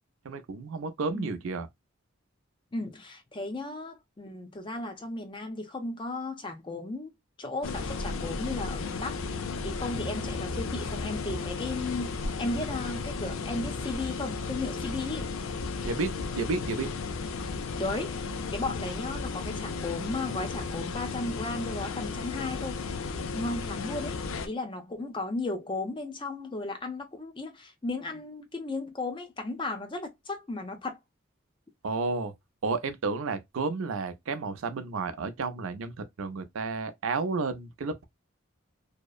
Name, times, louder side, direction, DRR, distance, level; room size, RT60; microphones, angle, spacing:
voice 1, 0.2-1.7 15.8-16.9 31.8-32.3 32.6-38.1, right 4 dB, 90° right, 0.5 m, -32 dB
voice 2, 2.7-7.1 7.4-15.3 17.8-22.8 23.3-31.0, left 2 dB, 25° left, 0.5 m, -35 dB
sound 1, 7.6-24.5, left 4 dB, 85° left, 0.4 m, -34 dB
2.8 x 2.0 x 2.2 m
head